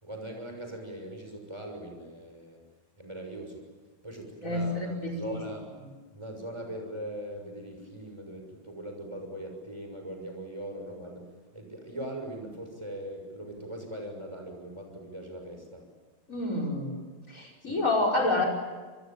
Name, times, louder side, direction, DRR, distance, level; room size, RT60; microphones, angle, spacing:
voice 1, 0.0-2.6 3.0-3.6 4.0-5.7 6.1-15.8 17.7-17.8, right 1 dB, 5° right, 3 dB, 6.3 m, -40 dB
voice 2, 4.4-5.4 16.3-17.0 17.3-18.5, left 2 dB, 20° left, 3 dB, 5.5 m, -28 dB
27.5 x 22.0 x 9.0 m, 1.3 s
omnidirectional pair, 4.1 m